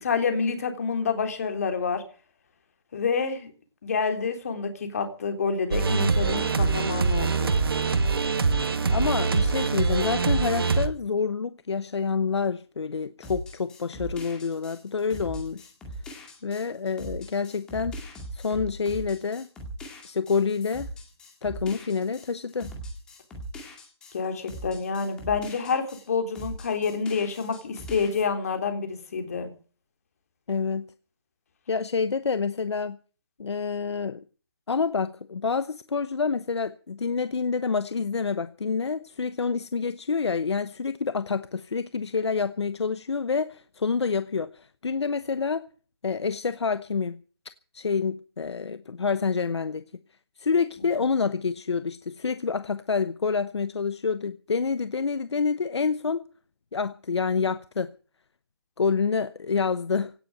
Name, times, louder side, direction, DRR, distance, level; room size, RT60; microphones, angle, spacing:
voice 1, 0.0-2.0 2.9-3.5 3.8-7.5 24.1-29.5, left 5 dB, 35° left, 3.6 m, -28 dB
sound 1, 5.7-10.9, right 4 dB, 60° right, 2.2 m, -24 dB
voice 2, 8.9-15.7 16.4-18.0 18.3-19.5 20.0-20.9 21.4-22.7 30.5-30.9 31.7-33.0 33.4-34.2 34.7-45.7 46.0-47.2 47.7-49.9 50.4-56.2 56.7-57.9 58.8-60.1, left 5 dB, 80° left, 1.0 m, -27 dB
sound 2, 13.2-26.1 26.3-28.2, right 1 dB, 5° left, 2.1 m, -40 dB
17.5 x 8.4 x 9.2 m
hypercardioid pair, 175°, 14 cm